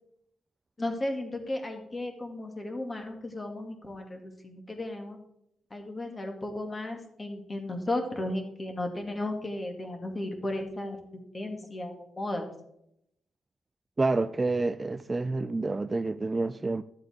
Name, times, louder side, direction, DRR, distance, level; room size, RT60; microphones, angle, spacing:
voice 1, 0.8-5.2 5.7-12.5, left 1 dB, 20° left, 2.0 m, -35 dB
voice 2, 14.0-16.8, right 3 dB, 20° right, 0.3 m, -28 dB
12.5 x 7.8 x 3.6 m
cardioid pair, 105°, 0 cm